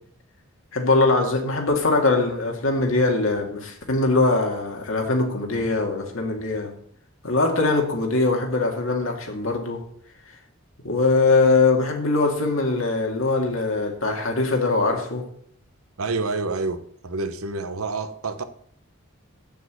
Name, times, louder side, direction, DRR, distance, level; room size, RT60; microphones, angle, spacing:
voice 1, 0.7-6.7 7.2-9.8 10.8-15.3, left 3 dB, 70° left, 2.1 m, -22 dB
voice 2, 16.0-18.4, right 3 dB, 85° right, 1.0 m, -28 dB
8.0 x 7.0 x 8.0 m
head